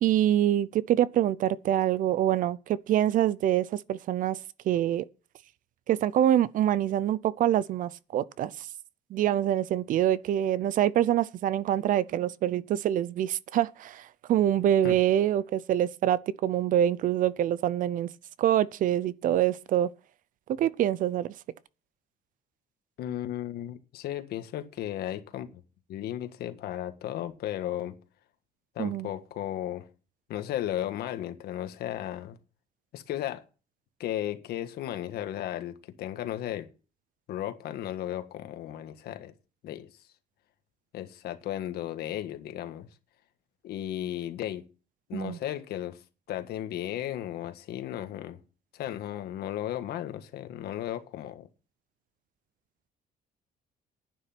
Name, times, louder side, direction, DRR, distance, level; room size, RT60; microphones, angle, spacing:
voice 1, 0.0-4.4 4.6-5.1 5.9-8.7 9.1-18.1 18.4-19.9 20.6-21.3 28.8-29.1 45.1-45.4, right 11 dB, 55° right, 0.6 m, -25 dB
voice 2, 23.0-25.6 25.9-27.9 28.7-29.9 30.3-32.4 32.9-33.4 34.0-36.7 37.3-39.3 39.6-39.9 40.9-42.9 43.6-44.6 45.1-46.0 46.3-48.4 48.7-51.5, left 12 dB, 70° left, 1.7 m, -35 dB
11.0 x 9.5 x 5.9 m
cardioid pair, 160°, 17 cm